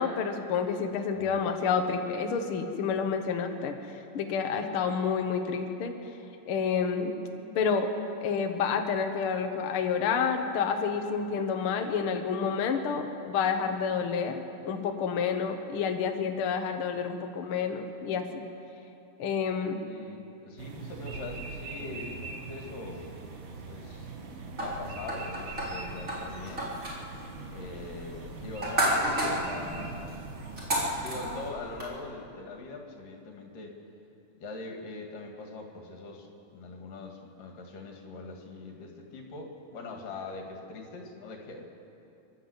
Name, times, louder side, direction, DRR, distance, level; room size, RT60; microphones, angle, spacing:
voice 1, 0.0-3.7 4.1-5.9 6.4-7.2 7.5-7.9 8.2-18.4 19.2-19.8, left 6 dB, 80° left, 5 dB, 1.2 m, -29 dB
voice 2, 1.2-1.5 19.9-23.1 23.7-24.1 24.6-26.7 27.5-30.1 31.0-33.8 34.4-41.6, left 3 dB, 60° left, 2 dB, 3.6 m, -42 dB
sound 1, 20.6-31.5, right 3 dB, 70° right, 3.6 m, -42 dB
sound 2, 24.6-31.9, right 1 dB, 20° right, 3.7 m, -33 dB
28.5 x 11.5 x 8.1 m, 2.8 s
omnidirectional pair, 4.5 m